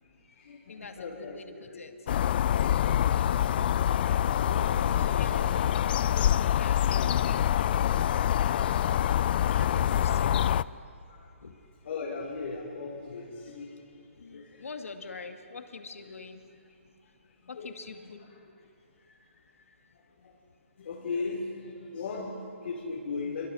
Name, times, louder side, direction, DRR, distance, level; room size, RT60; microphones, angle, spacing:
voice 1, 0.0-1.3 1.7-1.8 4.4-5.3 6.8-7.1 11.1-11.3 11.8-13.8 14.2-14.7 17.4-18.1 20.2-20.3 20.8-23.5, left 4 dB, 60° left, -5 dB, 5.2 m, -38 dB
voice 2, 0.7-2.0 5.0-5.5 6.5-7.5 9.5-10.6 11.4-11.5 14.2-16.4 17.5-18.2, left 4 dB, 85° left, 6 dB, 2.3 m, -44 dB
sound 1, 2.1-10.6, left 10 dB, 45° left, 0.5 m, -25 dB
28.5 x 24.0 x 6.4 m, 2.6 s
hypercardioid pair, 155°, 7 cm